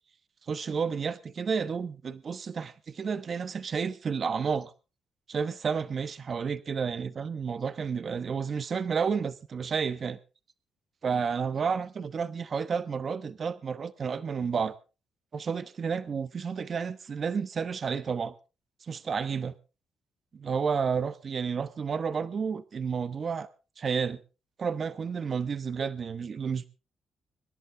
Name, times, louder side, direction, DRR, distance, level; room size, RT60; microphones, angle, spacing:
voice 1, 0.5-4.7 5.3-10.2 11.0-14.8 15.3-18.3 18.8-19.6 20.3-23.5 23.8-24.2 24.6-26.7, right 6 dB, 45° right, 1.0 m, -31 dB
25.0 x 11.0 x 3.4 m
cardioid pair, 90°, 0 cm